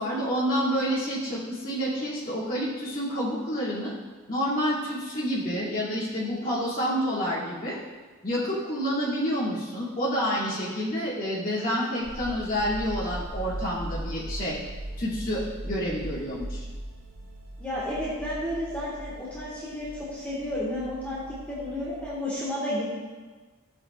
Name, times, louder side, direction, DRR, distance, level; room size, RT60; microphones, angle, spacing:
voice 1, 0.0-3.9 4.3-7.8 8.2-14.6 15.0-16.7, equal, 40° left, -9 dB, 2.7 m, -28 dB
sound 1, 12.0-22.2, right 1 dB, 85° right, 3.2 m, -39 dB
voice 2, 17.6-22.8, left 1 dB, 5° left, -8 dB, 1.7 m, -32 dB
14.5 x 7.9 x 2.5 m, 1.4 s
head